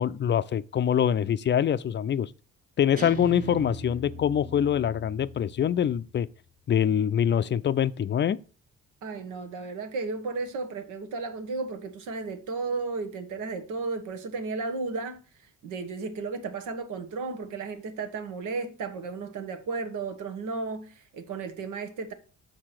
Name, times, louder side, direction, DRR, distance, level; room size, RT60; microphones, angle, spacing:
voice 1, 0.0-2.3 2.8-6.3 6.7-8.4, left 9 dB, 40° left, 0.4 m, -24 dB
Guitar, 3.0-6.2, right 2 dB, 30° right, 1.5 m, -40 dB
voice 2, 9.0-15.2 15.6-22.1, right 4 dB, 85° right, 1.3 m, -34 dB
6.6 x 4.8 x 5.8 m
cardioid pair, 90°, 30 cm